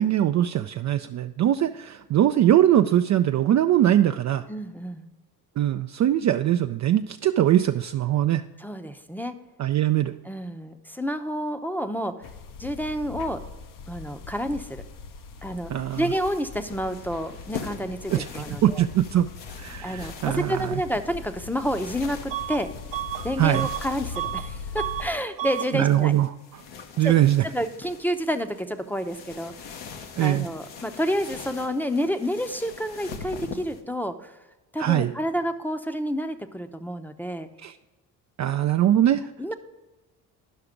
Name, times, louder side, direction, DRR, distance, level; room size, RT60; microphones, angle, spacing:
voice 1, 0.0-4.4 5.6-8.4 9.6-10.1 15.7-16.0 18.1-19.3 19.6-20.6 23.4-23.7 25.7-26.3 27.0-27.4 30.2-30.5 34.8-35.1 37.6-37.7 38.4-39.2, right 12 dB, 40° right, 8 dB, 0.4 m, -21 dB
voice 2, 4.5-5.1 8.6-9.3 10.2-12.2 12.6-13.4 13.9-14.8 15.4-18.8 19.8-22.7 23.2-26.1 27.0-27.2 27.4-29.5 30.2-34.3 34.7-37.5 39.4-39.5, equal, 5° left, 9 dB, 0.7 m, -29 dB
sound 1, 12.2-25.1, left 5 dB, 45° left, 0.7 m, -41 dB
sound 2, 15.9-33.8, left 6 dB, 70° left, 1.1 m, -43 dB
Bus / Alarm, 22.3-22.6 22.9-24.5 24.7-25.1 25.4-25.7, right 14 dB, 70° right, 0.7 m, -32 dB
11.0 x 5.8 x 5.1 m, 1.1 s
hypercardioid pair, 60°, 45 cm